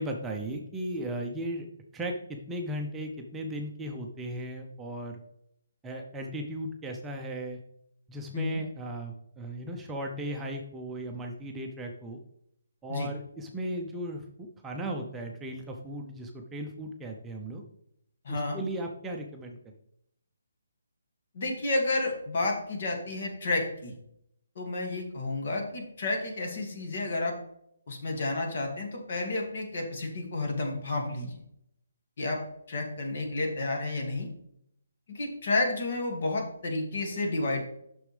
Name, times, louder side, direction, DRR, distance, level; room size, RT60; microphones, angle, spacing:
voice 1, 0.0-1.7 1.9-5.2 5.8-7.6 8.1-12.2 12.8-17.6 18.3-19.7, right 1 dB, 10° right, 1 dB, 0.7 m, -36 dB
voice 2, 18.2-18.6 21.3-23.9 24.6-27.3 27.9-31.3 32.2-32.4 32.7-34.3 35.1-37.6, left 2 dB, 55° left, 1 dB, 2.3 m, -31 dB
8.0 x 6.2 x 3.4 m, 0.74 s
hypercardioid pair, 155°, 0 cm